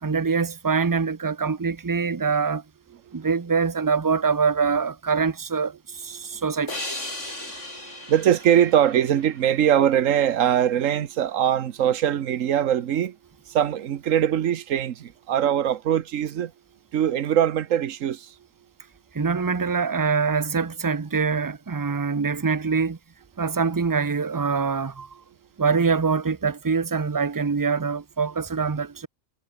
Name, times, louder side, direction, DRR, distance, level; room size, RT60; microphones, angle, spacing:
voice 1, 0.0-2.6 3.1-6.8 19.1-23.0 23.4-25.2 25.6-29.1, right 5 dB, 35° right, 0.3 m, -24 dB
sound 1, 6.7-10.0, left 1 dB, 60° left, 7.9 m, -36 dB
voice 2, 7.2-13.2 13.5-16.5 16.9-18.3, right 10 dB, 75° right, 1.3 m, -22 dB
omnidirectional pair, 1.4 m